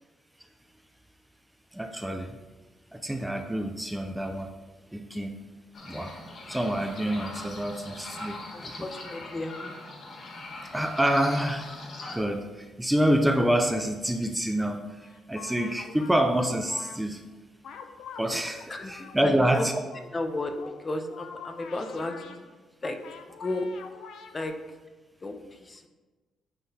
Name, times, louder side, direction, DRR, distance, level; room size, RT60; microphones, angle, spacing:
voice 1, 1.7-2.4 2.9-4.5 4.9-5.4 5.9-6.2 6.5-8.9 10.7-11.8 12.1-17.2 18.2-19.7, right 1 dB, 5° right, 5 dB, 0.5 m, -27 dB
sound 1, 5.7-12.2, left 2 dB, 50° left, 1.4 m, -41 dB
voice 2, 8.5-9.8 18.7-19.7 20.1-22.5 22.8-23.7 24.3-24.8 25.2-25.9, left 2 dB, 30° left, 6 dB, 0.7 m, -34 dB
sound 2, 14.6-14.7 15.0-17.0 17.6-19.4 19.9-20.1 20.5-20.8 21.1-22.4 22.8-24.5, left 6 dB, 75° left, 0.7 m, -45 dB
9.3 x 3.8 x 4.1 m, 1.2 s
cardioid pair, 90°, 0 cm